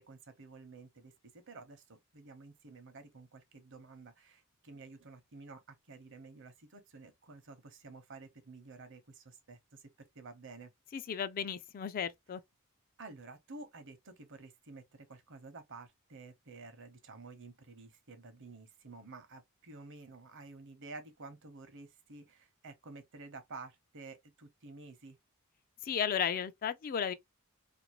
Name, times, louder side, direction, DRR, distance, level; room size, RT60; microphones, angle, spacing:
voice 1, 0.0-10.7 13.0-25.2, right 3 dB, 60° right, 0.8 m, -51 dB
voice 2, 10.9-12.4 25.8-27.1, left 7 dB, 40° left, 0.3 m, -34 dB
2.6 x 2.5 x 2.9 m
head